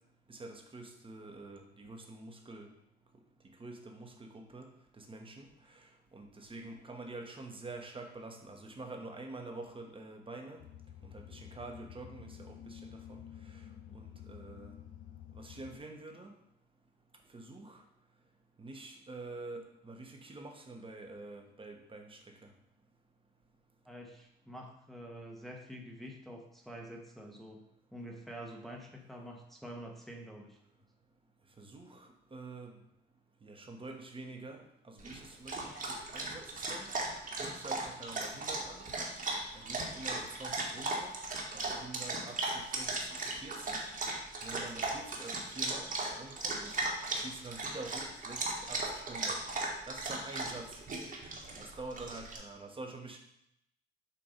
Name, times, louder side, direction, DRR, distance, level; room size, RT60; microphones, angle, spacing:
voice 1, 0.3-2.7 3.6-4.7 5.0-5.5 6.1-10.6 11.1-13.2 13.9-14.7 15.3-16.3 17.3-17.8 18.6-22.2 31.6-32.7 33.4-36.9 37.4-38.8 39.5-41.1 41.5-43.9 44.4-45.9 46.2-46.8 47.2-49.4 49.9-50.8 51.6-53.2, right 2 dB, 25° right, 3 dB, 1.0 m, -47 dB
sound 1, 10.6-15.8, left 9 dB, 80° left, 0.7 m, -50 dB
voice 2, 23.8-27.6 27.9-30.6, equal, ahead, -1 dB, 1.1 m, -47 dB
Dog, 35.0-52.4, right 2 dB, 45° right, 1.4 m, -37 dB
7.2 x 2.6 x 5.1 m, 0.79 s
cardioid pair, 90°, 20 cm